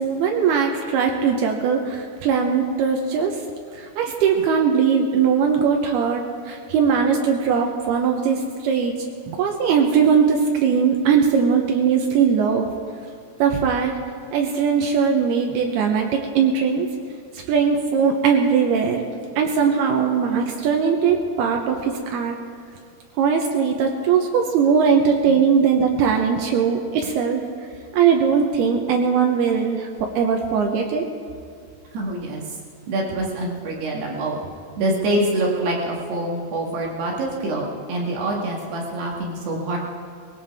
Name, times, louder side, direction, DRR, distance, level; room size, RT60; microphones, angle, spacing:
voice 1, 0.0-3.4 3.7-8.9 9.3-12.7 13.4-14.0 14.3-16.9 17.3-19.1 19.4-22.4 23.2-27.4 27.9-31.1, right 6 dB, 90° right, 2 dB, 2.2 m, -20 dB
voice 2, 31.9-32.6 32.9-34.4 34.8-39.8, right 1 dB, 65° right, -2 dB, 3.3 m, -25 dB
20.5 x 17.5 x 3.5 m, 2.4 s
omnidirectional pair, 5.7 m